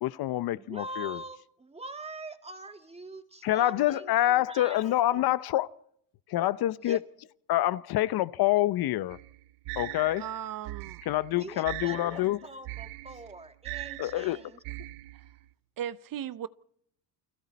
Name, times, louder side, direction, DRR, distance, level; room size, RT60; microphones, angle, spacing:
voice 1, 0.0-1.2 3.4-5.7 6.3-7.0 7.5-9.2 9.8-10.2 11.1-12.4 14.0-14.4, left 14 dB, 55° left, 0.8 m, -26 dB
voice 2, 0.5-4.9 6.8-7.0 11.3-14.6, right 2 dB, 15° right, 2.0 m, -43 dB
sound 1, 9.1-15.4, right 19 dB, 80° right, 1.2 m, -41 dB
voice 3, 10.2-11.0 15.1-15.2 15.8-16.5, right 10 dB, 45° right, 0.8 m, -37 dB
29.5 x 22.0 x 4.2 m
cardioid pair, 110°, 45 cm